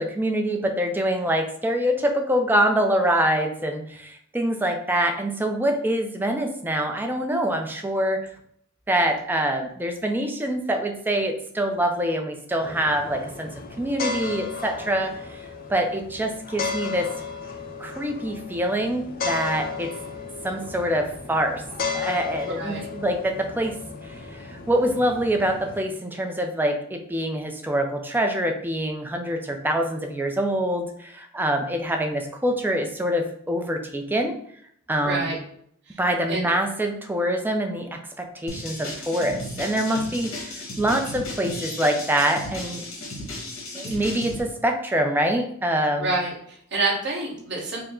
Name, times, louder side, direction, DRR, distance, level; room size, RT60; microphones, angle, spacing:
voice 1, 0.0-8.3 8.9-13.5 13.8-15.4 15.7-17.1 17.8-19.9 20.4-21.6 21.9-23.8 24.0-34.3 34.9-35.3 36.0-42.8 43.7-46.1, right 1 dB, 10° right, 4 dB, 0.4 m, -25 dB
sound 1, 12.6-25.8, left 5 dB, 45° left, 0.5 m, -34 dB
voice 2, 22.6-22.9 35.0-35.4 35.9-36.0 36.3-36.5 39.9-40.0 43.9-44.0 46.0-47.8, right 3 dB, 55° right, -4 dB, 1.3 m, -28 dB
sound 2, 38.5-44.4, left 1 dB, 80° left, 1.3 m, -35 dB
4.5 x 2.1 x 3.6 m, 0.67 s
head